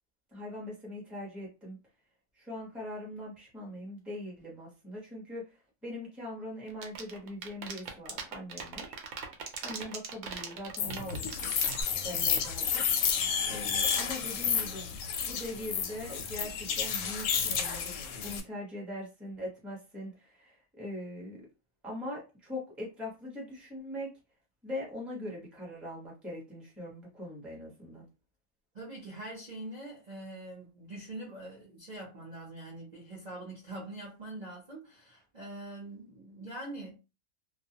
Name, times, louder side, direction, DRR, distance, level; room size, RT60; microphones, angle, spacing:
voice 1, 0.3-1.8 2.4-5.4 5.8-8.9 9.6-11.5 12.0-12.8 13.5-14.9 15.2-21.4 21.8-24.1 24.6-28.1, left 1 dB, ahead, 0.8 m, -41 dB
sound 1, 6.7-11.8, right 6 dB, 70° right, 0.9 m, -39 dB
sound 2, 10.8-18.4, left 7 dB, 70° left, 0.9 m, -31 dB
voice 2, 28.7-37.0, right 1 dB, 40° right, 0.7 m, -43 dB
2.4 x 2.2 x 2.7 m
omnidirectional pair, 1.5 m